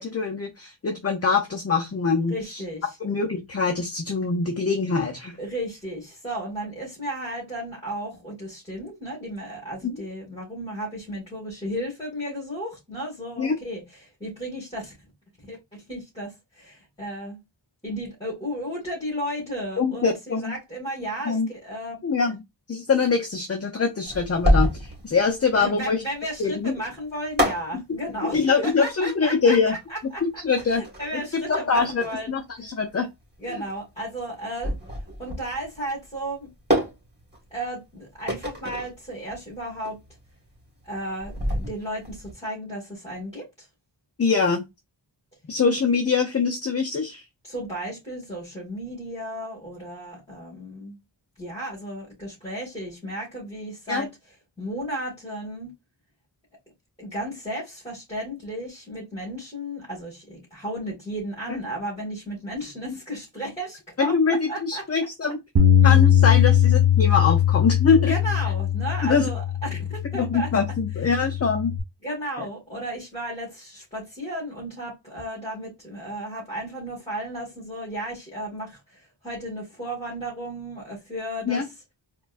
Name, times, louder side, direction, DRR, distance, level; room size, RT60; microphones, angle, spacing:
voice 1, 0.0-2.6 3.0-5.3 9.8-10.0 13.4-13.5 19.8-20.5 21.3-21.5 22.0-22.4 22.7-26.0 26.4-26.7 28.3-29.8 30.2-30.8 31.1-31.2 31.5-33.1 33.5-33.6 44.2-44.6 45.5-47.2 53.9-54.1 61.5-61.6 64.0-65.4 65.8-68.1 69.0-69.3 70.1-71.7 81.5-81.7, left 5 dB, 35° left, 0.6 m, -23 dB
voice 2, 2.3-3.0 5.4-15.0 15.5-15.6 15.9-17.4 17.8-22.0 25.6-30.2 30.7-32.4 33.4-34.8 35.2-36.5 37.5-40.0 40.8-43.7 47.4-51.0 51.4-54.1 54.6-55.7 57.0-64.8 66.3-66.5 67.9-70.5 71.0-71.3 72.0-81.8, right 1 dB, 15° left, 1.9 m, -34 dB
sound 1, 24.0-42.3, equal, 20° right, 1.8 m, -29 dB
Bass guitar, 65.6-71.8, left 10 dB, 45° right, 0.6 m, -20 dB
4.4 x 2.3 x 2.4 m
wide cardioid pair, 70°, 45 cm